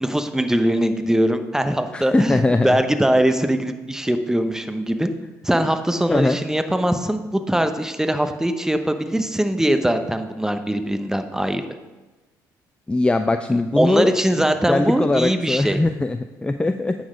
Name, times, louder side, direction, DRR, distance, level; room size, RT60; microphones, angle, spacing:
voice 1, 0.0-5.1 5.4-11.6 13.8-15.8, right 1 dB, 5° right, 8 dB, 0.8 m, -21 dB
voice 2, 1.9-2.8 6.1-6.4 12.9-14.1 14.7-17.0, left 2 dB, 10° left, 8 dB, 0.4 m, -20 dB
9.3 x 4.1 x 5.0 m, 1.1 s
supercardioid pair, 65°, 8 cm